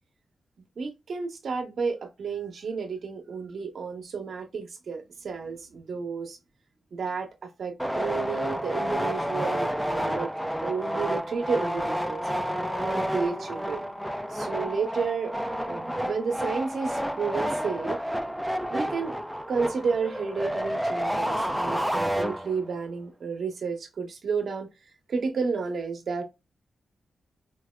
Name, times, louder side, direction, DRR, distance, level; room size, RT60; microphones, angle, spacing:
voice 1, 0.8-6.4 6.9-10.3 10.6-12.2 12.8-13.8 14.3-15.3 15.7-18.0 18.7-19.1 19.5-24.7 25.1-26.2, right 5 dB, 70° right, 1.0 m, -31 dB
sound 1, 7.8-22.8, equal, ahead, 0.5 m, -30 dB
4.6 x 2.1 x 2.3 m
cardioid pair, 65°, 0 cm